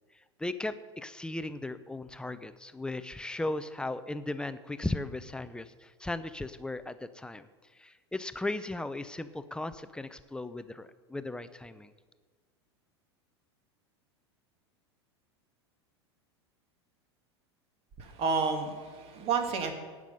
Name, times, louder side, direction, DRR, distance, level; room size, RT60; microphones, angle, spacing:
voice 1, 0.4-7.5 7.7-11.9, left 2 dB, 5° left, 12 dB, 0.6 m, -37 dB
voice 2, 18.0-19.7, right 5 dB, 45° right, 5 dB, 2.1 m, -30 dB
17.5 x 6.2 x 5.3 m, 1.5 s
hypercardioid pair, 95°, 14 cm